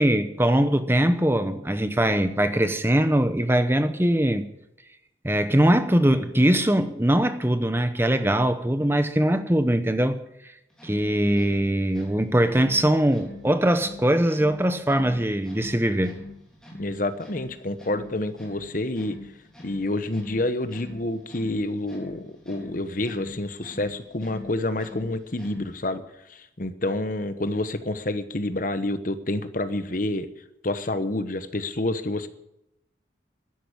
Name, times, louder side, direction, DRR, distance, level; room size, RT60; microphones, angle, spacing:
voice 1, 0.0-4.5 5.2-10.2 10.8-16.2, right 1 dB, 10° right, 0.8 m, -21 dB
sound 1, 10.7-25.9, left 2 dB, 5° left, 3.7 m, -44 dB
voice 2, 16.8-19.2 19.6-26.0 26.3-30.3 30.6-32.3, left 2 dB, 45° left, 1.0 m, -28 dB
13.0 x 11.0 x 8.8 m
head